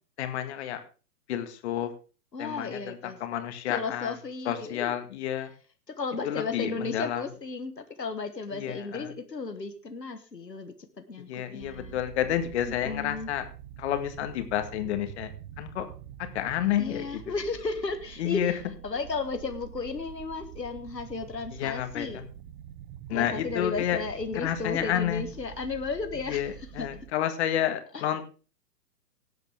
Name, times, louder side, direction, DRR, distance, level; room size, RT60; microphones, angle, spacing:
voice 1, 0.2-0.8 1.3-1.9 2.4-4.2 4.5-5.5 6.2-7.2 8.5-9.1 11.2-13.4 13.8-15.3 15.6-15.9 16.2-17.2 18.2-18.5 21.6-22.2 23.1-24.0 24.3-25.2 26.3-28.3, left 11 dB, 40° left, 9 dB, 2.0 m, -30 dB
voice 2, 2.3-3.2 3.7-4.9 5.9-12.0 12.8-13.3 16.8-18.6 18.8-22.2 23.1-26.5 26.8-26.9 27.9-28.0, left 4 dB, 85° left, 8 dB, 1.5 m, -34 dB
sound 1, 11.6-27.1, right 10 dB, 30° right, 0.9 m, -46 dB
17.5 x 7.9 x 3.5 m, 0.35 s
figure-of-eight pair, 115°, 48 cm